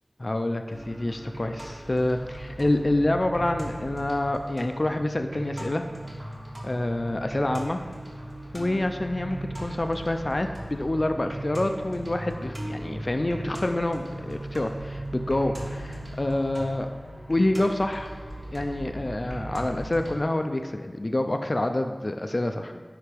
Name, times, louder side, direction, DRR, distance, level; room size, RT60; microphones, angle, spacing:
voice 1, 0.2-5.8 6.6-7.8 8.5-16.9 17.3-18.1 18.5-22.8, left 1 dB, 50° left, 6 dB, 0.3 m, -27 dB
sound 1, 0.7-20.1, right 1 dB, 45° right, 1.1 m, -38 dB
9.5 x 3.4 x 3.3 m, 1.5 s
wide cardioid pair, 40°, 0 cm